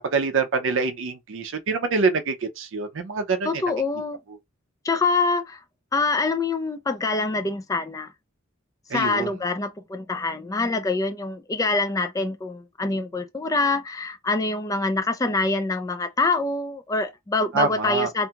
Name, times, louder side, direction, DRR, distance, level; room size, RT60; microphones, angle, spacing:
voice 1, 0.1-3.5 8.9-9.3 17.5-18.1, right 4 dB, 65° right, 0.5 m, -25 dB
voice 2, 3.4-4.2 4.8-5.6 5.9-8.1 8.9-18.3, left 3 dB, 15° left, 0.3 m, -25 dB
2.6 x 2.3 x 2.8 m
head